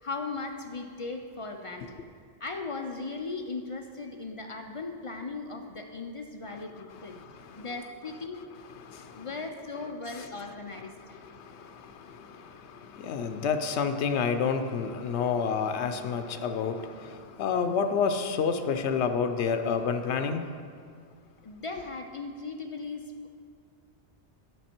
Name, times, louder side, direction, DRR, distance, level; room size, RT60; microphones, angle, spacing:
voice 1, 0.0-2.0 2.4-7.2 7.6-8.4 9.1-11.2 21.4-23.0, left 3 dB, 50° left, 3 dB, 0.4 m, -38 dB
voice 2, 7.1-7.7 8.9-9.3 11.3-20.5, left 6 dB, 85° left, 8 dB, 0.9 m, -29 dB
9.2 x 6.2 x 4.4 m, 2.2 s
omnidirectional pair, 1.1 m